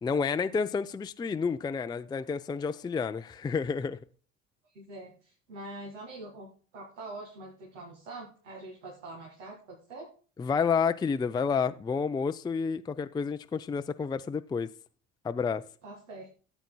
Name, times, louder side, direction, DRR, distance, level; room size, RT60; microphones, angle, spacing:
voice 1, 0.0-4.0 10.4-14.7 15.2-15.6, left 5 dB, 10° left, 0.4 m, -30 dB
voice 2, 4.7-10.1 15.8-16.4, right 2 dB, 90° right, 2.0 m, -44 dB
14.0 x 8.1 x 2.2 m
hypercardioid pair, 65°, 36 cm